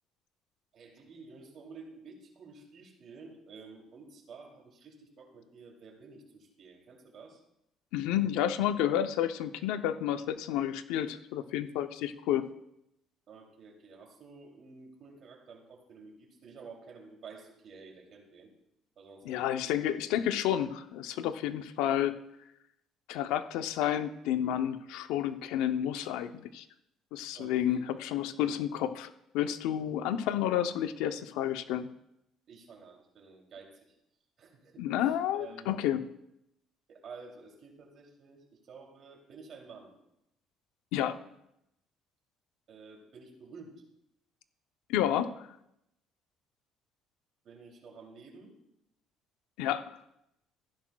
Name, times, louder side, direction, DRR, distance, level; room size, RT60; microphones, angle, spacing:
voice 1, 0.7-7.4 13.3-18.5 19.0-19.9 27.3-27.8 32.5-34.0 34.4-34.9 35.3-35.8 36.9-39.9 42.7-43.8 47.4-48.6, right 4 dB, 55° right, 1 dB, 2.8 m, -51 dB
voice 2, 7.9-12.4 19.2-22.2 23.1-26.6 27.1-31.9 34.8-36.0 40.9-41.2 44.9-45.5 49.6-49.8, left 11 dB, 90° left, 10 dB, 0.6 m, -30 dB
15.0 x 10.5 x 2.3 m, 0.82 s
cardioid pair, 110°, 0 cm